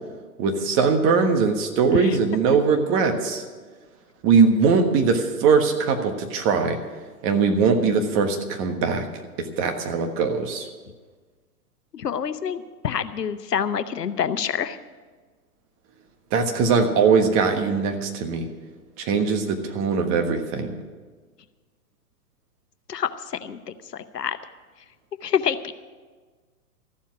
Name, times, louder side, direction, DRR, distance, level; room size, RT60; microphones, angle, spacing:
voice 1, 0.4-3.4 4.2-6.8 7.2-9.1 9.6-10.7 16.3-18.5 19.0-20.8, right 5 dB, 25° right, 5 dB, 1.4 m, -21 dB
voice 2, 11.9-14.8 22.9-23.1 23.4-23.6 23.9-24.4 25.2-25.7, left 8 dB, 85° left, 12 dB, 1.0 m, -27 dB
14.0 x 7.4 x 9.3 m, 1.4 s
hypercardioid pair, 130°, 47 cm